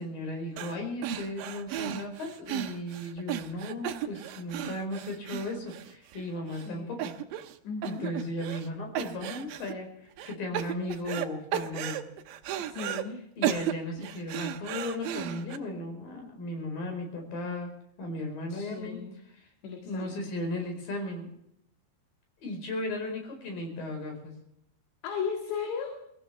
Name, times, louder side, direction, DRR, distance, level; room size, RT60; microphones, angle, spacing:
voice 1, 0.0-7.1 7.8-9.9 10.3-12.1 13.4-17.7 18.0-19.0 19.4-19.5 19.8-21.3 22.4-24.3, left 1 dB, 50° left, 4 dB, 6.2 m, -36 dB
sound 1, 0.6-0.8 1.0-6.2 6.5-6.7 7.0-7.6 7.8-8.7 9.0-9.7 10.2-11.3 11.5-13.0 13.4-15.6, right 11 dB, 80° right, 2.1 m, -34 dB
voice 2, 6.5-7.1 7.6-8.1 12.6-13.3 18.5-19.2 19.6-20.3 25.0-26.0, left 6 dB, 70° left, 2 dB, 4.0 m, -36 dB
24.5 x 15.5 x 3.3 m, 0.75 s
omnidirectional pair, 5.3 m